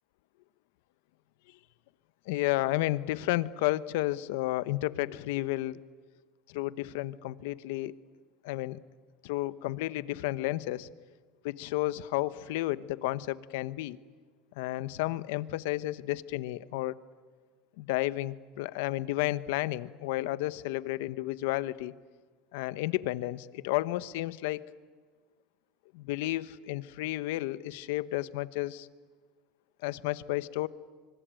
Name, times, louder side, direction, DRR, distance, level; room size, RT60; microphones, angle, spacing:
voice 1, 2.3-5.8 6.5-7.9 8.4-8.8 9.2-10.9 11.4-14.0 14.6-16.9 17.8-21.9 22.5-24.7 25.9-28.9 29.8-30.7, left 17 dB, 80° left, 16 dB, 1.0 m, -32 dB
25.5 x 25.5 x 9.0 m, 1.5 s
supercardioid pair, 145°, 0 cm